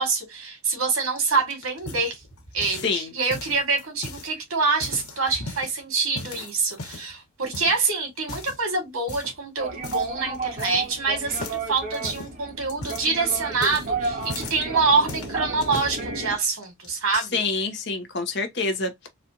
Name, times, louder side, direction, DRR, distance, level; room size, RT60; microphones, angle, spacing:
voice 1, 0.0-2.1 2.5-17.4, right 4 dB, 85° right, 2.1 m, -26 dB
sound 1, 1.0-3.0 3.3-4.3 4.7-5.7 6.1-7.1 7.5-7.8 8.2-8.6 9.1-9.4 9.8-10.1 10.3-11.0 11.3-14.6 15.1-16.0 16.6-17.2, left 2 dB, 90° left, 1.4 m, -38 dB
voice 2, 2.8-3.1 17.1-19.1, left 4 dB, 50° left, 1.0 m, -27 dB
sound 2, 9.6-16.4, right 4 dB, 40° right, 2.1 m, -32 dB
4.2 x 2.4 x 2.8 m
head